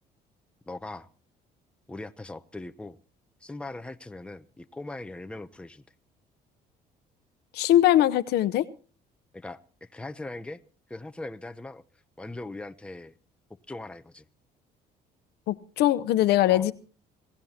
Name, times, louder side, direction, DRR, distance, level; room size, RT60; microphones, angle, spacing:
voice 1, 0.7-1.1 1.9-3.0 3.4-5.8 9.3-10.6 10.9-11.8 12.2-13.1 13.7-14.3 16.5-16.7, left 2 dB, 5° left, 0.7 m, -40 dB
voice 2, 7.5-8.7 15.5-16.7, left 13 dB, 80° left, 0.8 m, -21 dB
25.0 x 16.0 x 2.9 m
cardioid pair, 110°, 17 cm